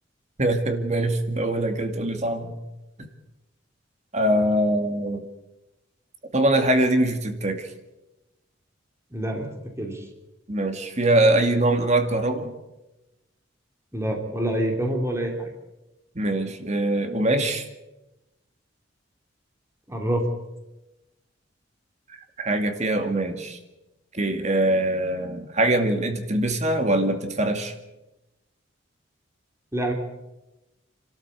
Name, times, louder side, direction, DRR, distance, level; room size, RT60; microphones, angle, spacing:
voice 1, 0.4-2.6 4.1-5.2 6.3-7.7 10.5-12.5 16.2-17.6 22.4-23.6 24.1-27.7, right 1 dB, 35° right, 6 dB, 2.3 m, -23 dB
voice 2, 9.1-9.5 9.8-10.1 13.9-15.5 19.9-20.3 29.7-29.9, right 1 dB, 15° right, 2 dB, 3.1 m, -26 dB
28.0 x 13.0 x 8.3 m, 0.99 s
head